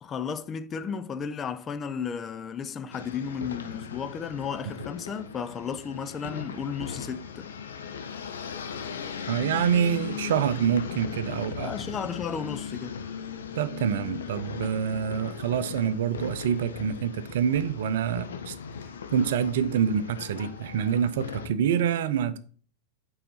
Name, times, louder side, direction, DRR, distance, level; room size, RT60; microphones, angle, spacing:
voice 1, 0.0-7.5 11.6-13.0, left 6 dB, 25° left, 0.6 m, -34 dB
sound 1, 2.9-21.5, left 6 dB, 65° left, 1.2 m, -38 dB
voice 2, 9.3-11.7 13.5-18.5 19.1-22.4, right 8 dB, 55° right, 0.6 m, -26 dB
9.2 x 4.8 x 5.6 m
figure-of-eight pair, 90°, 0 cm